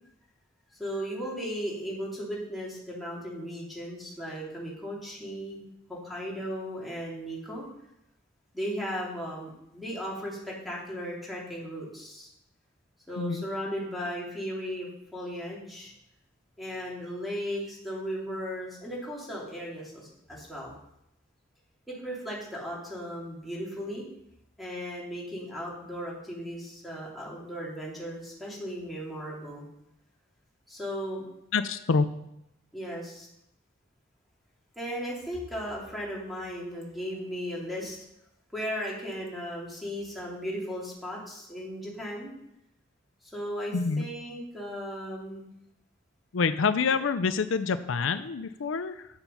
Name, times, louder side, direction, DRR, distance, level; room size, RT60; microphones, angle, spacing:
voice 1, 0.8-5.6 5.9-7.7 8.5-12.3 13.1-15.9 16.6-20.7 21.9-24.0 24.6-29.7 30.7-31.2 32.7-33.3 34.8-38.0 38.5-42.3 43.2-45.4, equal, ahead, -5 dB, 3.0 m, -36 dB
voice 2, 31.5-32.1 43.7-44.1 46.3-49.1, left 5 dB, 80° left, 11 dB, 0.5 m, -27 dB
9.6 x 7.1 x 5.6 m, 0.82 s
head